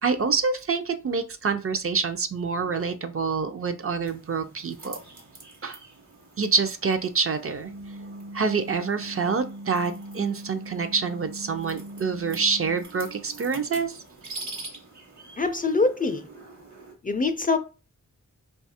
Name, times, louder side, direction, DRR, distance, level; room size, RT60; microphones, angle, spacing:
voice 1, 0.0-5.0 5.6-5.8 6.4-7.7 8.3-14.0, right 5 dB, 45° right, 0.5 m, -26 dB
sound 1, 4.1-16.9, right 2 dB, 60° right, 1.1 m, -46 dB
sound 2, 7.6-12.8, right 1 dB, 75° left, 0.5 m, -40 dB
voice 2, 15.4-16.3 17.0-17.6, left 3 dB, 30° left, 0.3 m, -24 dB
2.7 x 2.4 x 4.2 m
wide cardioid pair, 85°, 31 cm